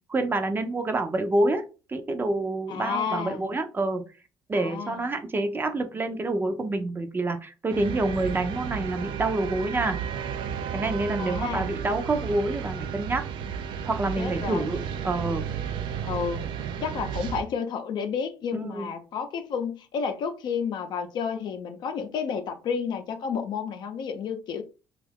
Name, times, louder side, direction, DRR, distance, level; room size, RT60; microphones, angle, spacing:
voice 1, 0.1-4.0 4.5-10.0 10.7-13.3 13.8-15.5 18.5-18.9, right 2 dB, 25° right, 7 dB, 0.6 m, -27 dB
voice 2, 2.7-3.5 4.5-5.0 11.2-11.7 14.2-14.6 16.0-16.5 16.8-24.6, left 6 dB, 65° left, 6 dB, 0.6 m, -31 dB
sound 1, 7.7-17.4, right 8 dB, 75° right, 0.4 m, -33 dB
2.6 x 2.4 x 3.4 m, 0.32 s
supercardioid pair, 80°, 8 cm